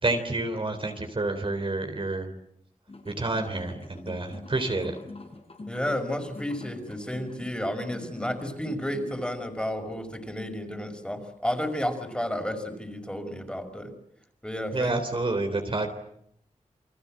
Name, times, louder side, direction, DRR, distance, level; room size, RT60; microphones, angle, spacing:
voice 1, 0.0-2.3 3.1-5.0 14.7-15.9, right 2 dB, 40° right, 6 dB, 3.6 m, -29 dB
sound 1, 2.9-9.4, left 3 dB, 50° left, 4.9 m, -45 dB
voice 2, 5.7-13.9 14.4-15.0, equal, 5° left, 6 dB, 5.5 m, -32 dB
29.5 x 23.5 x 7.7 m, 0.73 s
wide cardioid pair, 100°, 13 cm